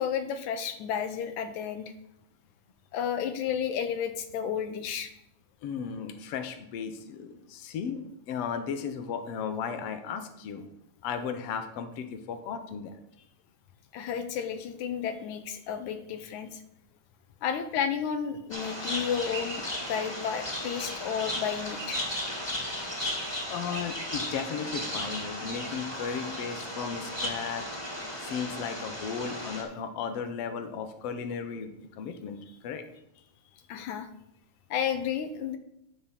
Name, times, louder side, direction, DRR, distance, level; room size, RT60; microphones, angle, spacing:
voice 1, 0.0-1.9 2.9-5.1 13.9-16.6 17.4-22.0 33.7-34.1 34.7-35.6, left 8 dB, 85° left, 8 dB, 2.3 m, -32 dB
voice 2, 5.6-8.0 8.3-10.7 11.0-12.9 23.5-27.6 28.2-32.8, left 6 dB, 65° left, 7 dB, 1.7 m, -35 dB
sound 1, 18.5-29.6, left 1 dB, 20° left, 0.7 m, -35 dB
9.7 x 3.8 x 7.3 m, 0.78 s
omnidirectional pair, 3.4 m